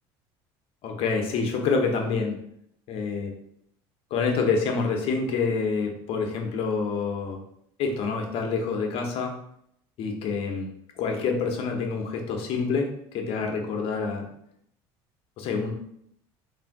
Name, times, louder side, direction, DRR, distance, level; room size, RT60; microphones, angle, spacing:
voice 1, 0.8-2.4 2.9-3.3 4.1-7.4 7.8-9.4 10.0-10.7 11.0-14.2 15.4-15.7, left 4 dB, 55° left, 2 dB, 0.7 m, -27 dB
2.5 x 2.4 x 3.5 m, 0.72 s
supercardioid pair, 100°, 11 cm